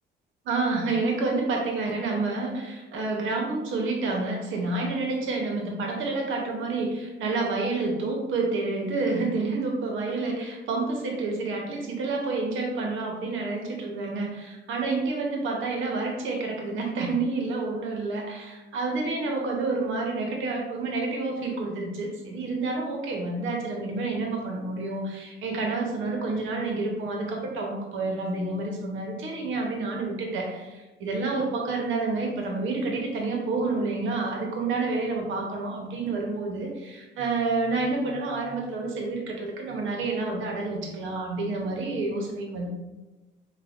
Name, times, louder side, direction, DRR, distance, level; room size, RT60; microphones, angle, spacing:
voice 1, 0.4-42.7, right 3 dB, 80° right, 0 dB, 0.7 m, -29 dB
4.8 x 2.1 x 2.4 m, 1.1 s
cardioid pair, 90°, 20 cm